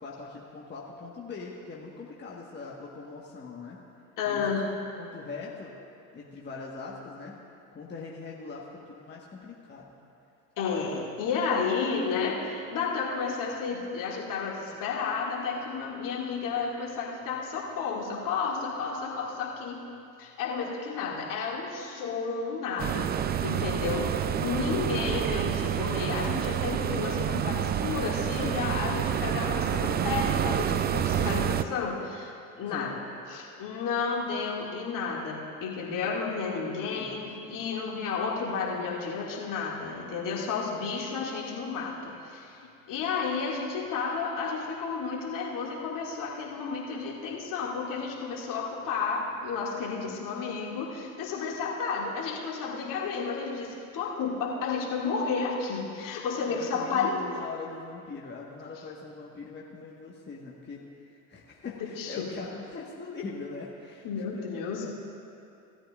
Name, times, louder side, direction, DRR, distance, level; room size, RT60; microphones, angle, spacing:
voice 1, 0.0-3.8 4.3-4.6 5.0-5.8 6.1-7.3 7.7-9.8 24.6-24.9 32.7-32.9 36.8-37.5 56.5-64.4 64.8-64.9, left 4 dB, 25° left, -4 dB, 1.6 m, -42 dB
voice 2, 4.2-4.7 10.6-19.8 20.2-23.1 23.4-32.9 33.3-42.6 42.9-57.2 61.8-62.3 64.0-64.9, left 5 dB, 50° left, -3 dB, 2.5 m, -32 dB
sound 1, 22.8-31.6, right 9 dB, 25° right, 0.4 m, -28 dB
19.0 x 13.0 x 2.5 m, 2.6 s
hypercardioid pair, 70°, 42 cm